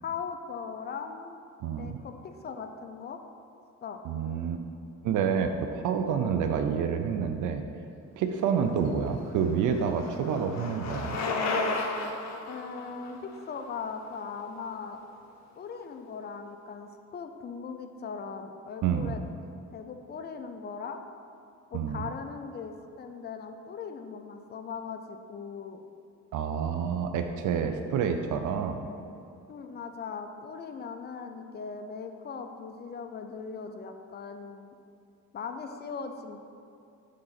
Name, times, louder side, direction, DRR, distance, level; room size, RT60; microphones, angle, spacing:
voice 1, 0.0-1.4 1.8-3.2 3.8-4.0 8.6-8.9 12.5-15.0 15.6-19.2 19.7-21.0 21.7-25.8 29.5-34.7 35.3-36.4, left 5 dB, 35° left, 6 dB, 0.5 m, -39 dB
voice 2, 1.6-2.0 4.0-4.6 5.0-7.6 8.2-11.2 18.8-19.1 21.7-22.1 26.3-28.9, right 7 dB, 80° right, 6 dB, 0.5 m, -28 dB
Bicycle, 8.9-14.8, left 3 dB, 65° left, 0.9 m, -34 dB
6.5 x 3.8 x 5.7 m, 2.6 s
cardioid pair, 90°, 30 cm